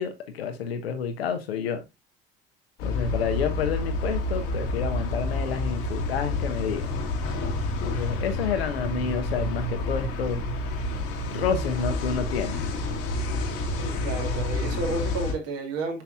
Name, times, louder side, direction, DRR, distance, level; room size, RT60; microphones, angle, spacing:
voice 1, 0.0-1.8 2.8-7.0 7.8-10.4 11.3-12.6, left 6 dB, 70° left, 1.2 m, -29 dB
sound 1, 2.8-15.3, left 2 dB, 55° left, 1.7 m, -29 dB
voice 2, 13.7-16.0, right 3 dB, 50° right, 2.3 m, -31 dB
7.4 x 5.8 x 2.5 m
figure-of-eight pair, 60°, 31 cm